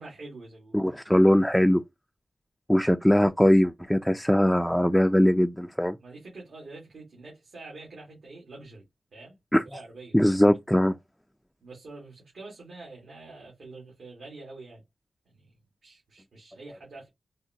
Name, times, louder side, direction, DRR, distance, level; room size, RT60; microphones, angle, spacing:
voice 1, 0.0-0.8 6.0-8.8 9.1-10.2 11.6-14.8 15.2-15.6 15.8-17.1, right 3 dB, 80° right, 1.4 m, -46 dB
voice 2, 0.7-1.8 2.7-6.0 9.5-9.6 10.1-10.9, equal, 5° left, 0.3 m, -21 dB
3.8 x 2.1 x 2.6 m
cardioid pair, 50°, 0 cm